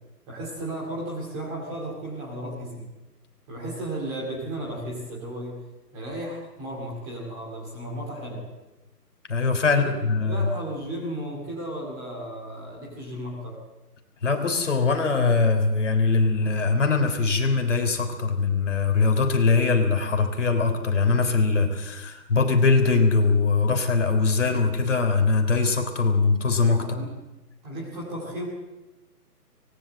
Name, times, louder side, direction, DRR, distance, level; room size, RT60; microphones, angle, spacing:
voice 1, 0.3-2.9 3.5-5.6 5.9-8.5 9.7-9.9 10.2-13.6 26.8-27.1 27.6-28.5, right 1 dB, 10° right, -3 dB, 2.3 m, -34 dB
voice 2, 9.3-10.5 14.2-26.8, left 4 dB, 45° left, 5 dB, 3.4 m, -22 dB
24.0 x 19.5 x 7.6 m, 1.1 s
hypercardioid pair, 175°, 48 cm